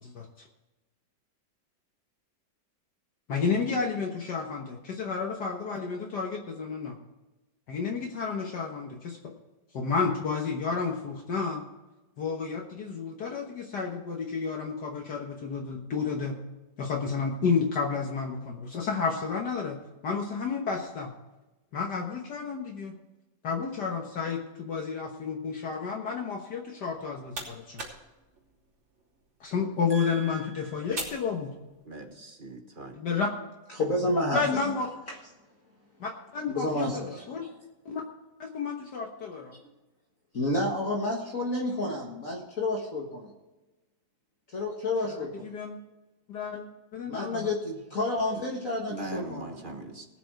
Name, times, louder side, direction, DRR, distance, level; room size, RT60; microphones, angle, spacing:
voice 1, 3.3-7.0 7.7-9.3 9.7-11.6 12.2-16.3 16.8-19.8 20.0-21.1 21.7-22.9 23.4-27.8 29.4-31.5 32.9-33.3 34.3-34.9 36.0-37.4 37.8-38.0 38.4-39.5 45.0-45.8 46.3-47.5, left 5 dB, 60° left, 1 dB, 1.8 m, -31 dB
sound 1, 26.8-32.1, right 2 dB, 85° right, 3.9 m, -44 dB
voice 2, 29.9-30.8 31.8-32.9 48.3-48.4 48.9-50.1, right 2 dB, 30° right, 5 dB, 1.2 m, -41 dB
voice 3, 33.7-34.4 35.1-35.2 36.5-37.5 40.3-43.3 44.5-45.5 47.0-49.6, left 1 dB, 45° left, -2 dB, 2.0 m, -30 dB
19.5 x 7.0 x 4.7 m, 1.1 s
omnidirectional pair, 2.1 m